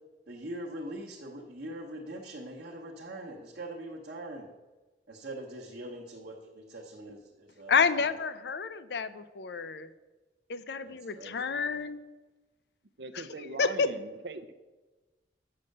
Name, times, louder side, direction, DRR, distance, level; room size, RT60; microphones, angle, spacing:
voice 1, 0.3-4.5 5.1-8.1 10.8-11.8, right 1 dB, 55° right, -4 dB, 1.0 m, -42 dB
voice 2, 7.7-9.9 10.5-12.0 13.6-13.9, left 5 dB, 70° left, 13 dB, 0.5 m, -29 dB
voice 3, 13.0-14.5, right 3 dB, 75° right, 10 dB, 0.6 m, -41 dB
7.6 x 5.9 x 6.5 m, 1.2 s
head